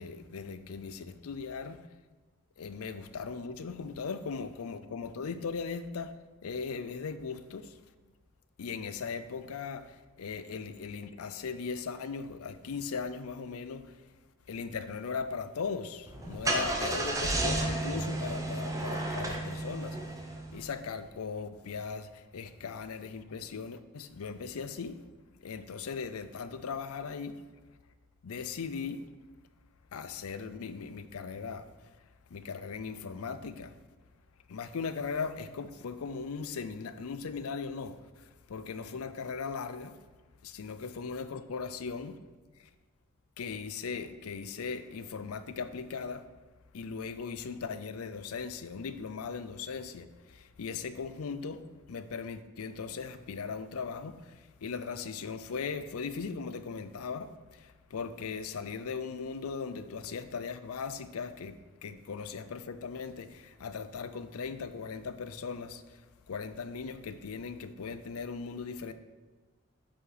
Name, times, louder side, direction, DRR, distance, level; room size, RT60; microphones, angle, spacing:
voice 1, 0.0-1.8 2.6-6.1 6.4-7.7 8.6-9.9 10.2-13.9 14.5-20.0 20.5-25.0 25.4-27.4 28.2-29.0 29.9-31.7 32.3-33.7 34.5-38.0 38.5-40.0 40.4-42.2 43.4-46.2 46.7-50.1 50.3-51.6 51.9-54.3 54.6-65.8 66.3-68.9, left 5 dB, 80° left, 0.5 m, -38 dB
Car / Engine starting, 16.1-20.7, right 2 dB, 15° right, 0.8 m, -32 dB
7.7 x 5.5 x 4.1 m
head